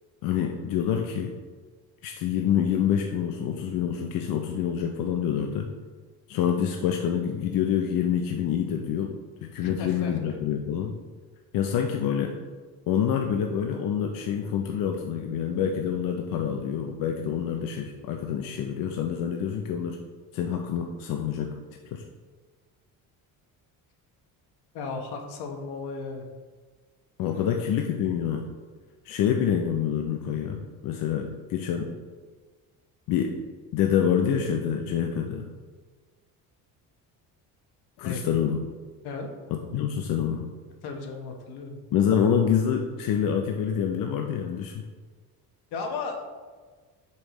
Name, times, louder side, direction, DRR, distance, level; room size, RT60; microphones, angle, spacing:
voice 1, 0.2-1.3 2.0-5.7 6.3-9.1 9.4-10.9 11.5-12.4 12.9-20.0 20.3-21.5 21.9-22.0 27.2-28.5 29.0-31.9 33.1-33.3 33.7-35.5 38.0-38.6 39.5-40.5 41.9-44.8, left 8 dB, 60° left, 3 dB, 0.6 m, -27 dB
voice 2, 9.6-10.2 24.7-26.3 27.3-27.5 38.0-38.2 39.0-39.3 40.8-41.8 45.7-46.2, left 4 dB, 80° left, 3 dB, 1.1 m, -35 dB
6.4 x 5.5 x 3.0 m, 1.5 s
cardioid pair, 150°, 38 cm